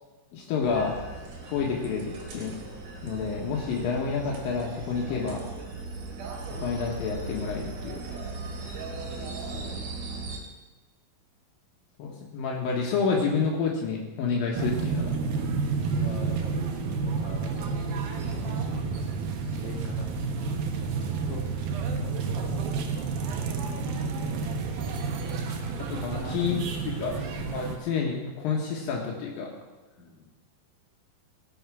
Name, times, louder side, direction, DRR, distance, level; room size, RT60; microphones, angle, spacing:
voice 1, 0.3-1.0 1.5-2.6 3.0-5.4 6.6-8.2 12.0-15.1 21.3-21.5 25.9-26.6 26.9-27.1 27.5-29.5, left 5 dB, 80° left, -2 dB, 3.2 m, -29 dB
sound 1, 0.6-10.4, right 3 dB, 65° right, 3.6 m, -38 dB
voice 2, 8.6-10.3 14.7-15.5 15.9-20.6 20.9-23.2 23.8-25.5 26.1-26.9 30.0-30.3, left 3 dB, 55° left, -3 dB, 3.8 m, -46 dB
sound 2, 14.6-27.8, right 5 dB, 90° right, 3.1 m, -30 dB
18.0 x 7.3 x 6.2 m, 1.2 s
omnidirectional pair, 4.0 m